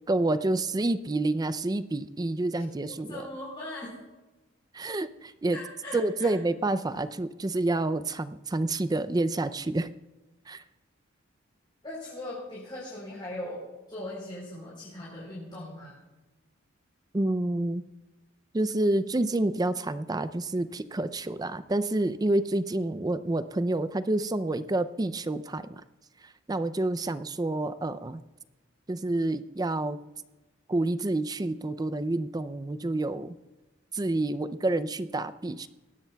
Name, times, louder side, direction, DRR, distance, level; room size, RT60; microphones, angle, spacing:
voice 1, 0.1-3.2 4.7-5.6 5.9-9.9 10.5-10.6 17.1-17.8 18.5-25.8 26.2-28.2 28.9-30.0 30.7-33.4 33.9-35.7, right 2 dB, 20° right, 13 dB, 0.4 m, -28 dB
voice 2, 3.1-3.9 5.5-6.3 11.8-16.0, left 1 dB, 25° left, -5 dB, 3.7 m, -39 dB
19.0 x 16.5 x 2.3 m, 1.1 s
head